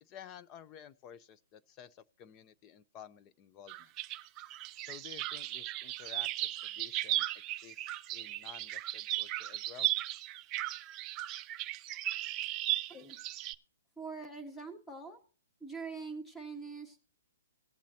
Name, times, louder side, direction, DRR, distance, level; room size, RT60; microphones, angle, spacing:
voice 1, 0.0-3.9 4.9-7.3 7.6-9.9, left 9 dB, 25° left, 15 dB, 0.6 m, -52 dB
sound 1, 3.7-13.5, right 15 dB, 25° right, 0.4 m, -36 dB
voice 2, 14.0-15.2 15.6-17.0, right 4 dB, 10° left, 7 dB, 1.6 m, -43 dB
18.0 x 7.3 x 2.8 m, 0.40 s
hypercardioid pair, 150°, 0 cm